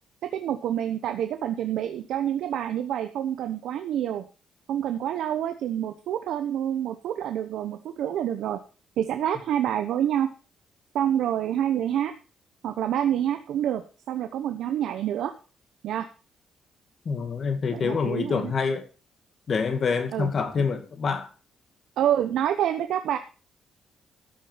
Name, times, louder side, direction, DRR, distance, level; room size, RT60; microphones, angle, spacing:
voice 1, 0.2-4.2 4.7-8.6 9.0-10.3 10.9-12.1 12.6-15.3 15.8-16.1 17.7-18.5 20.1-20.3 22.0-23.2, right 10 dB, 80° right, 0.9 m, -27 dB
voice 2, 17.1-18.8 19.5-21.3, left 5 dB, 50° left, 2.2 m, -26 dB
13.0 x 6.6 x 5.8 m
cardioid pair, 90°, 0 cm